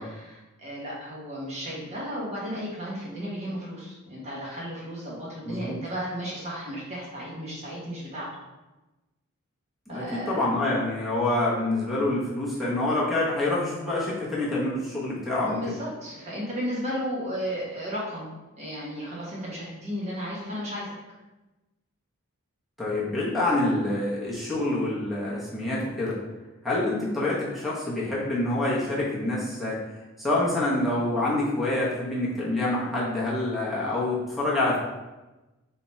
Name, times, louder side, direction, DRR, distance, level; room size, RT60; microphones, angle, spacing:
voice 1, 0.0-8.3 9.9-10.4 15.4-18.3 18.6-20.9, equal, 30° right, -6 dB, 1.2 m, -34 dB
voice 2, 5.4-5.8 9.9-15.8 22.8-26.2 26.6-29.8 30.2-34.8, left 2 dB, ahead, -6 dB, 1.0 m, -26 dB
3.4 x 2.9 x 4.2 m, 1.1 s
head